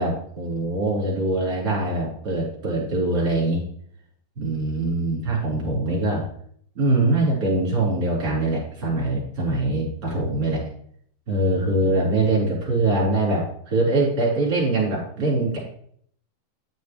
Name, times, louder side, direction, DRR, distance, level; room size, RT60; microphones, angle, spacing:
voice 1, 0.0-3.6 4.4-6.3 6.7-10.6 11.3-15.6, right 2 dB, 25° right, -5 dB, 4.4 m, -23 dB
10.5 x 8.0 x 3.2 m, 0.63 s
omnidirectional pair, 4.4 m